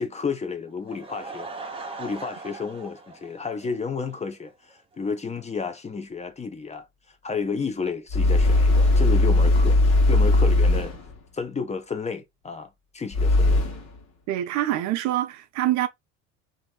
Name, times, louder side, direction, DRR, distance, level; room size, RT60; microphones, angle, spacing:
voice 1, 0.0-1.5 2.0-10.9 11.3-13.6, left 5 dB, 20° left, 0.6 m, -32 dB
Laughter / Crowd, 0.7-4.1 4.5-4.6 5.1-5.2 5.4-5.5, right 3 dB, 15° right, 0.9 m, -39 dB
sound 1, 8.1-11.2 13.1-14.0, left 2 dB, 45° left, 1.2 m, -19 dB
voice 2, 14.3-15.9, right 14 dB, 50° right, 0.5 m, -25 dB
3.0 x 2.6 x 2.3 m
hypercardioid pair, 75°, 37 cm